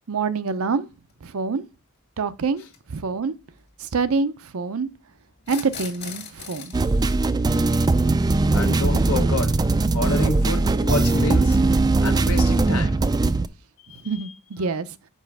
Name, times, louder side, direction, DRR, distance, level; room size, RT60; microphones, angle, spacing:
voice 1, 0.1-0.9 1.2-1.6 2.2-2.6 2.9-3.3 3.8-4.9 5.5-6.7 13.9-14.9, right 4 dB, 75° right, 0.6 m, -26 dB
sound 1, 1.1-1.2 2.6-2.8 5.4-6.8, left 7 dB, 50° left, 1.7 m, -37 dB
sound 2, 6.7-13.5, right 3 dB, 20° right, 0.3 m, -20 dB
voice 2, 8.5-9.5 9.9-11.6 12.0-13.0 13.8-14.2, left 2 dB, 80° left, 1.2 m, -28 dB
5.4 x 4.9 x 6.1 m
head